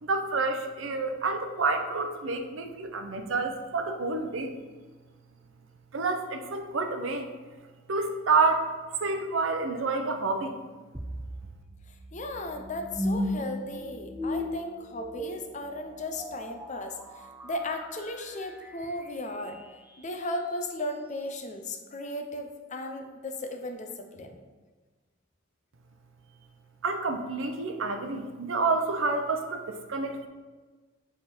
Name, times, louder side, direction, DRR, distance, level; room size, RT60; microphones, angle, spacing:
voice 1, 0.0-4.5 5.9-7.3 7.9-8.7 9.0-10.6 26.8-30.3, right 3 dB, 80° right, 6 dB, 0.6 m, -28 dB
sound 1, 10.9-20.1, left 1 dB, 10° right, 0.4 m, -37 dB
voice 2, 12.1-19.6 20.0-24.4, left 1 dB, 40° left, 5 dB, 0.6 m, -36 dB
6.4 x 3.5 x 4.3 m, 1.3 s
head